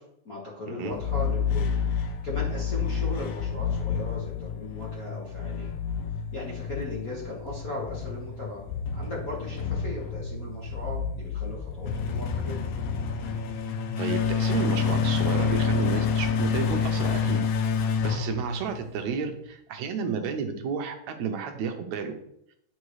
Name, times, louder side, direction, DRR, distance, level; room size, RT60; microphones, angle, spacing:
voice 1, 0.0-5.8 6.1-8.6 8.9-12.7, left 2 dB, 60° left, -5 dB, 0.9 m, -38 dB
sound 1, 0.9-19.1, left 6 dB, 85° left, 1.4 m, -28 dB
voice 2, 14.0-17.4 18.0-22.1, right 6 dB, 75° right, 5 dB, 1.8 m, -32 dB
9.6 x 4.7 x 3.1 m, 0.76 s
omnidirectional pair, 3.7 m